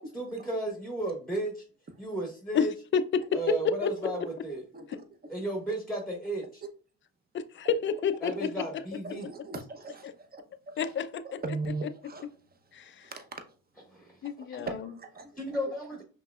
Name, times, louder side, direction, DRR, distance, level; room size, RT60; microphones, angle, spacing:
voice 1, 0.1-1.6 2.0-2.7 3.3-4.6 5.3-6.6 8.2-9.3 13.9-14.2 14.5-14.6 15.4-16.0, right 1 dB, ahead, 1.1 m, -34 dB
voice 2, 2.9-4.0 7.3-9.0 10.8-11.4 12.7-13.1 14.2-14.9, left 6 dB, 35° left, 0.5 m, -29 dB
voice 3, 9.0-10.9 11.4-12.3 13.0-13.3 14.6-15.3, right 3 dB, 25° right, 0.9 m, -38 dB
5.5 x 3.1 x 2.4 m
supercardioid pair, 75°, 35 cm